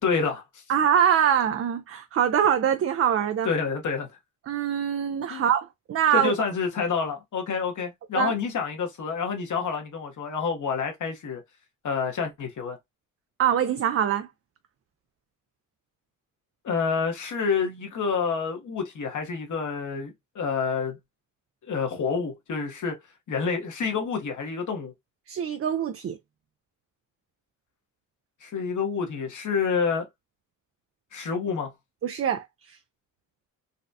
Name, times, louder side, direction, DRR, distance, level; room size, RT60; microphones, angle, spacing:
voice 1, 0.0-0.6 3.4-4.1 5.3-5.5 6.1-11.4 11.8-12.8 16.6-21.0 21.6-23.0 23.3-24.9 28.4-30.1 31.1-31.7, left 5 dB, 60° left, 1.3 m, -28 dB
voice 2, 0.7-3.5 4.5-6.3 8.1-8.3 13.4-14.3 25.3-26.2 32.0-32.8, right 9 dB, 40° right, 0.4 m, -24 dB
4.1 x 2.3 x 2.6 m
cardioid pair, 85°, 34 cm